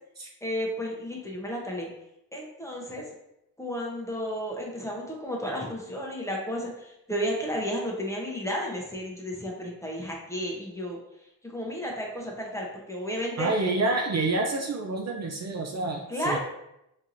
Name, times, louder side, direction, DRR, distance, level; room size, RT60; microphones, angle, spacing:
voice 1, 0.4-1.9 2.3-3.1 3.6-11.0 11.4-13.5 13.8-13.9 16.1-16.4, equal, 10° left, -2 dB, 0.8 m, -32 dB
voice 2, 13.4-16.4, right 2 dB, 45° right, 1 dB, 0.5 m, -28 dB
4.4 x 2.9 x 2.5 m, 0.84 s
cardioid pair, 110°, 38 cm